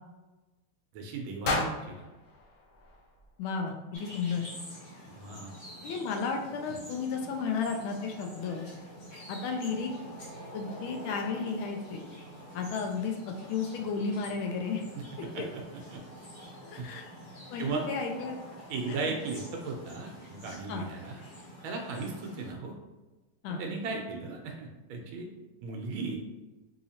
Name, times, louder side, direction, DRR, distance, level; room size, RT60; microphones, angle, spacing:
voice 1, 0.9-2.1 5.1-5.5 6.7-6.8 15.3-16.0 16.8-16.9 17.6-17.8 18.7-21.2 21.6-22.7 23.5-25.3 25.6-26.2, right 4 dB, 85° right, 1 dB, 1.4 m, -36 dB
sound 1, 1.4-3.6, left 3 dB, 70° left, 0.8 m, -35 dB
voice 2, 3.4-4.4 5.8-8.6 9.3-9.9 10.5-12.0 12.5-14.8 16.7-17.1 17.5-18.3 18.9-19.2 20.7-20.9 23.4-23.6, left 5 dB, 90° left, 3 dB, 1.4 m, -33 dB
sound 2, 3.9-22.5, equal, 55° left, 1.4 m, -47 dB
4.2 x 2.8 x 2.8 m, 1.1 s
omnidirectional pair, 2.2 m